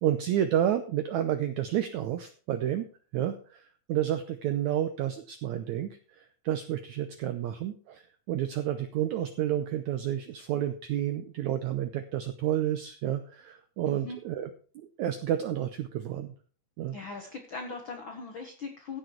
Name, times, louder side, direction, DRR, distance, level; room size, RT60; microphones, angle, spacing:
voice 1, 0.0-2.9 3.1-3.6 3.9-5.9 6.2-14.5 14.8-16.3 16.8-17.0, right 11 dB, 85° right, 9 dB, 1.6 m, -30 dB
voice 2, 13.8-14.2 16.9-19.0, left 4 dB, 75° left, 4 dB, 1.1 m, -40 dB
15.5 x 6.6 x 4.5 m, 0.40 s
omnidirectional pair, 4.3 m